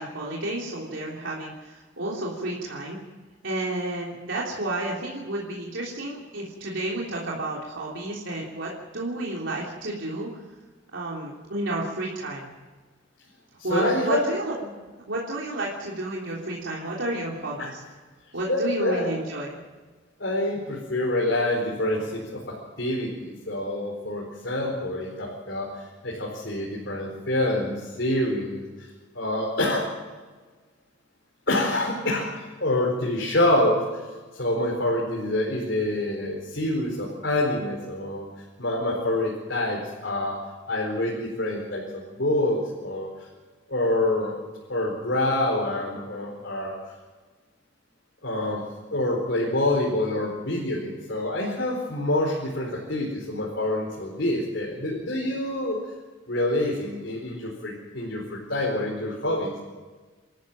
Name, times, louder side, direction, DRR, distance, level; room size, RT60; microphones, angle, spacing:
voice 1, 0.0-3.0 3.4-10.3 10.9-12.5 13.6-14.7 15.1-17.8 18.3-19.5, right 2 dB, 80° right, -4 dB, 3.4 m, -31 dB
voice 2, 13.6-14.2 17.6-17.7 18.5-19.1 20.2-28.9 29.1-29.9 31.5-33.8 34.3-38.3 38.6-40.4 40.7-43.3 43.7-44.3 44.7-46.8 48.2-48.6 48.9-55.8 56.3-59.5, left 1 dB, 65° left, -2 dB, 4.5 m, -26 dB
27.5 x 13.5 x 7.7 m, 1.3 s
head